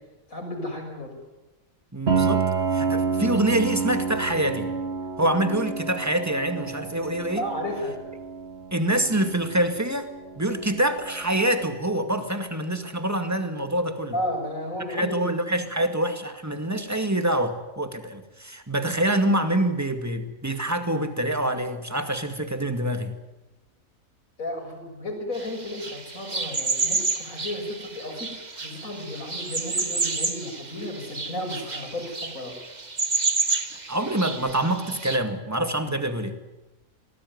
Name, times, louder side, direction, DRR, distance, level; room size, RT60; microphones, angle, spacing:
voice 1, 0.3-1.2 7.3-8.0 14.1-15.3 24.4-32.5, left 1 dB, 80° left, 3 dB, 6.8 m, -33 dB
voice 2, 1.9-4.7 5.2-7.4 8.7-14.2 14.9-23.1 33.9-36.4, right 1 dB, 10° right, 7 dB, 2.2 m, -26 dB
Piano, 2.1-11.6, right 5 dB, 50° right, 2.3 m, -29 dB
sound 1, 25.3-35.2, right 3 dB, 30° right, 1.7 m, -30 dB
25.5 x 19.0 x 9.6 m, 1.0 s
omnidirectional pair, 1.4 m